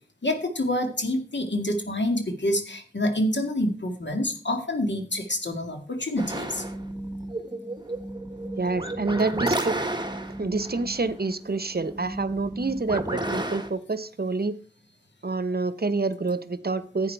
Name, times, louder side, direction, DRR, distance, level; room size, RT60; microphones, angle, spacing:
voice 1, 0.2-6.6, left 1 dB, 85° left, 4 dB, 2.0 m, -27 dB
sound 1, 6.2-13.7, right 1 dB, 25° right, 1.5 m, -32 dB
voice 2, 8.6-9.8 10.4-14.6 15.2-17.1, right 3 dB, 60° right, 14 dB, 0.8 m, -27 dB
11.0 x 8.6 x 4.6 m, 0.40 s
wide cardioid pair, 40°, 18 cm